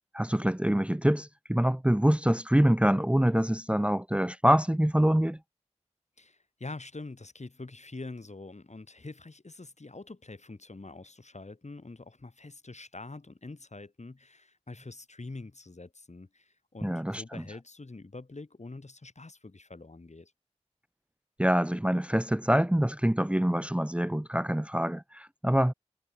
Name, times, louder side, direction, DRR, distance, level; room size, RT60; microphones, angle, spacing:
voice 1, 0.1-5.4 16.8-17.4 21.4-25.7, equal, 10° right, 0.6 m, -25 dB
voice 2, 6.2-20.3, left 3 dB, 70° left, 7.6 m, -45 dB
wide cardioid pair, 45°, 12 cm